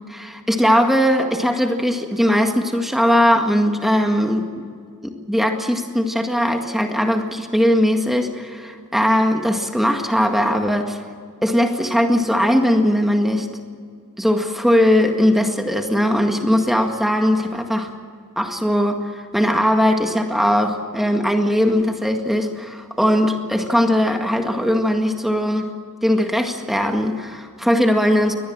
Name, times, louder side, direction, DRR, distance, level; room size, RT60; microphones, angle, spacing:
voice 1, 0.1-4.5 5.0-11.0 11.4-13.5 14.2-17.9 18.4-25.7 26.0-28.3, equal, ahead, 4 dB, 1.9 m, -19 dB
23.0 x 19.0 x 7.5 m, 2.2 s
head